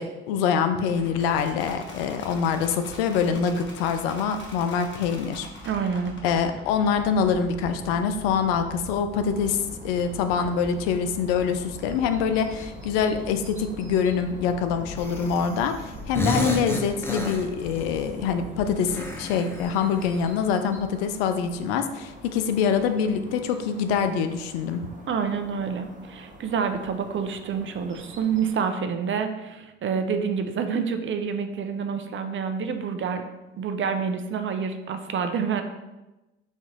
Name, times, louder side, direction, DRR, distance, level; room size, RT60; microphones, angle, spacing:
voice 1, 0.0-5.5 6.2-24.8, left 6 dB, 85° left, 8 dB, 0.5 m, -25 dB
sound 1, 0.8-19.0, equal, 40° left, 1.1 m, -42 dB
voice 2, 5.6-6.1 25.1-33.2 33.6-35.6, right 6 dB, 45° right, 7 dB, 0.6 m, -28 dB
sound 2, 9.1-28.5, right 1 dB, 25° right, 0.9 m, -47 dB
sound 3, 15.0-15.6 15.9-17.9 18.9-20.4, equal, 10° left, 0.8 m, -31 dB
4.2 x 2.9 x 3.7 m, 1.0 s
hypercardioid pair, 60°, 29 cm